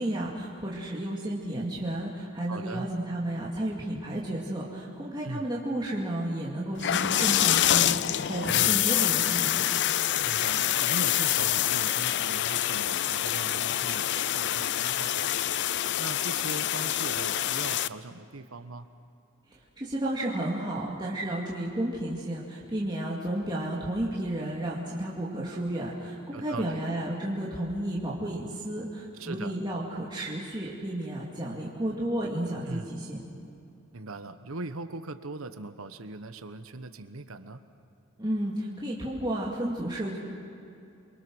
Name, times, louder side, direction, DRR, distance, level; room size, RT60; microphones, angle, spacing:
voice 1, 0.0-9.6 19.5-33.2 38.2-40.2, right 1 dB, 20° right, -5 dB, 2.5 m, -32 dB
voice 2, 2.5-2.9 5.2-5.4 8.4-8.8 10.2-15.5 16.0-18.9 26.3-26.8 29.1-29.6 32.7-33.0 33.9-37.6, right 3 dB, 80° right, 10 dB, 1.1 m, -40 dB
sound 1, 6.8-17.9, left 12 dB, 55° left, 0.5 m, -26 dB
28.5 x 23.5 x 6.3 m, 2.6 s
head